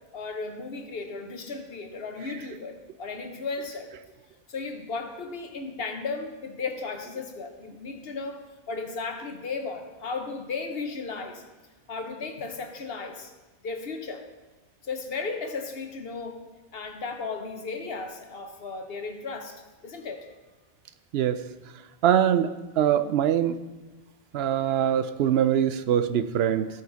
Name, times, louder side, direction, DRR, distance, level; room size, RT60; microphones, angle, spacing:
voice 1, 0.1-3.9 4.5-8.4 8.7-11.4 11.9-13.3 13.6-14.2 14.8-16.4 16.7-20.3, left 4 dB, 70° left, 5 dB, 1.3 m, -35 dB
voice 2, 22.0-22.5 22.8-23.6 24.3-26.7, right 10 dB, 80° right, 12 dB, 0.8 m, -23 dB
16.5 x 5.4 x 4.0 m, 1.2 s
omnidirectional pair, 1.0 m